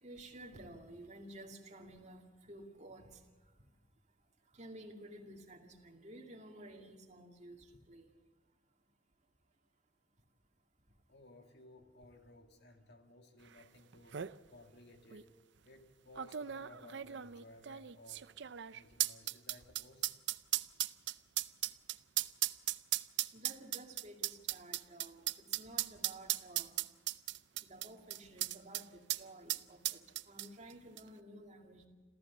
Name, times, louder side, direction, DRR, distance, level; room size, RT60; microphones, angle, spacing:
voice 1, 0.0-3.2 4.5-8.1 23.3-25.2 25.6-26.7 27.6-31.9, right 1 dB, 35° right, 3 dB, 2.4 m, -53 dB
voice 2, 11.1-14.2 14.5-15.3 15.6-18.3 18.7-20.1, left 2 dB, 55° left, 5 dB, 2.3 m, -58 dB
sound 1, 13.6-13.7 13.9-14.3 15.1-15.2 16.2-28.8 29.1-29.2 29.5-30.7 31.0-31.1, right 14 dB, 60° right, 0.5 m, -37 dB
27.0 x 14.5 x 7.3 m, 1.4 s
head